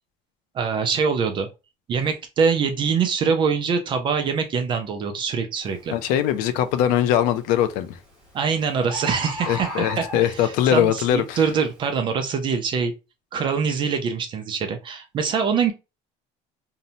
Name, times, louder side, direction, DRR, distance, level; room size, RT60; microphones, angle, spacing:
voice 1, 0.5-1.5 1.9-5.9 8.3-12.9 13.3-15.7, right 6 dB, 35° right, 0.4 m, -24 dB
Bird, 5.6-5.9 6.4-6.9 7.9-8.0 8.3-8.4 8.6-8.7 8.9-10.6 11.2-11.3, right 1 dB, 5° right, 1.0 m, -33 dB
voice 2, 5.9-8.0 9.5-11.4, left 10 dB, 75° left, 0.4 m, -21 dB
2.6 x 2.1 x 2.7 m
cardioid pair, 155°, 15 cm